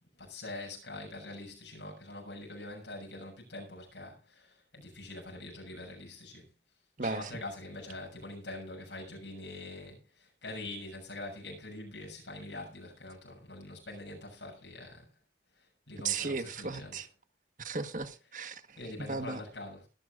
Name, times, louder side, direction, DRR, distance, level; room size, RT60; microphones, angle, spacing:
voice 1, 0.2-6.5 7.0-15.1 15.6-17.0 18.8-19.9, left 2 dB, 80° left, 6.6 m, -44 dB
voice 2, 7.0-7.3 16.0-17.1 17.6-18.8 19.1-19.4, right 4 dB, 45° right, 1.4 m, -35 dB
21.0 x 12.0 x 2.5 m
head